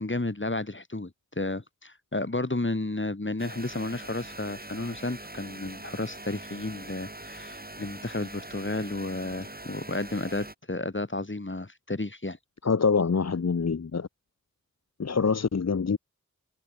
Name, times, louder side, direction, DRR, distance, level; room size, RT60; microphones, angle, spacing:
voice 1, 0.0-12.4, left 2 dB, 40° left, 2.5 m, -32 dB
sound 1, 3.4-10.5, right 1 dB, 30° right, 4.1 m, -43 dB
voice 2, 12.6-14.1 15.0-16.0, left 5 dB, 60° left, 0.8 m, -25 dB
wide cardioid pair, 40°, 30 cm